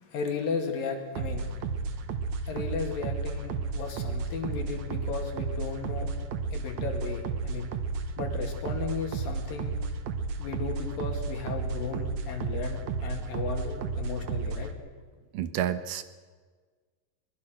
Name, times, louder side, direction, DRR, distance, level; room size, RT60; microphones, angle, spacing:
voice 1, 0.0-1.5 2.5-6.1 6.5-7.7 8.2-9.8 10.4-14.8, left 5 dB, 70° left, 3 dB, 4.0 m, -35 dB
sound 1, 1.1-14.7, right 4 dB, 65° right, 2.1 m, -33 dB
voice 2, 15.3-16.0, right 10 dB, 85° right, 11 dB, 2.9 m, -29 dB
23.0 x 21.0 x 6.4 m, 1.5 s
omnidirectional pair, 4.1 m